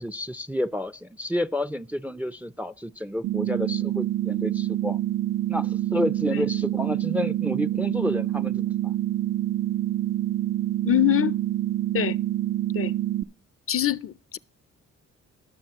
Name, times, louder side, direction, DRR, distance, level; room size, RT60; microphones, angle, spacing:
voice 1, 0.0-5.0 5.5-8.9, left 1 dB, 5° right, 0.4 m, -30 dB
sound 1, 3.2-13.2, right 13 dB, 60° right, 0.6 m, -26 dB
voice 2, 10.8-11.4 11.9-12.2 12.7-12.9 13.7-14.4, left 13 dB, 45° left, 0.5 m, -24 dB
18.5 x 7.0 x 2.9 m
supercardioid pair, 60°, 31 cm